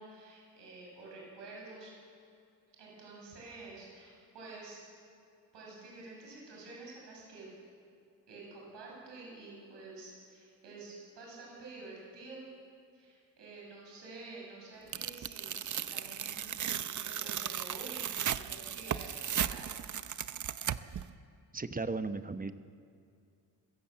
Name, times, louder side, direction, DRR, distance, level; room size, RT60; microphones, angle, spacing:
voice 1, 0.0-1.9 2.8-4.8 5.5-7.5 8.3-12.5 12.9-19.8, right 3 dB, 80° right, -3 dB, 7.4 m, -49 dB
Tearing, 14.9-21.0, right 9 dB, 45° right, 0.7 m, -36 dB
voice 2, 21.5-22.5, right 3 dB, 20° right, 10 dB, 0.9 m, -35 dB
23.5 x 16.0 x 7.6 m, 2.4 s
cardioid pair, 95°, 42 cm